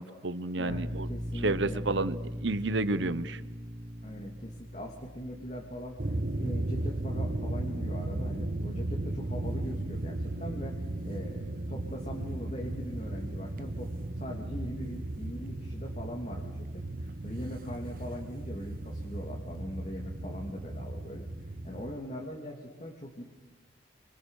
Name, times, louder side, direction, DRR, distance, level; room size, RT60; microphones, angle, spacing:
voice 1, 0.0-1.1 1.4-3.4, right 2 dB, 75° right, 15 dB, 1.1 m, -30 dB
voice 2, 0.6-1.8 4.0-21.3 21.6-23.2, equal, 35° left, 0 dB, 3.0 m, -41 dB
sound 1, 0.7-12.0, equal, 30° right, 1.5 m, -42 dB
sound 2, 6.0-21.9, right 1 dB, 50° right, 1.0 m, -35 dB
30.0 x 26.0 x 6.7 m, 1.1 s
head